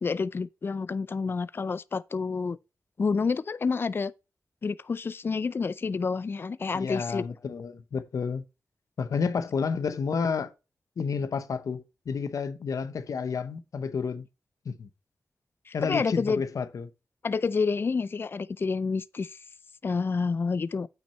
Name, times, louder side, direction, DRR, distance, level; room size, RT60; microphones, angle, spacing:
voice 1, 0.0-2.6 3.0-4.1 4.6-7.2 15.7-16.4 17.2-19.4 19.8-20.9, left 4 dB, 40° left, 0.4 m, -28 dB
voice 2, 6.7-8.4 9.0-10.5 11.0-14.2 14.6-14.9 15.7-16.9, left 5 dB, 75° left, 0.7 m, -30 dB
8.8 x 5.9 x 4.1 m
wide cardioid pair, 115°, 6 cm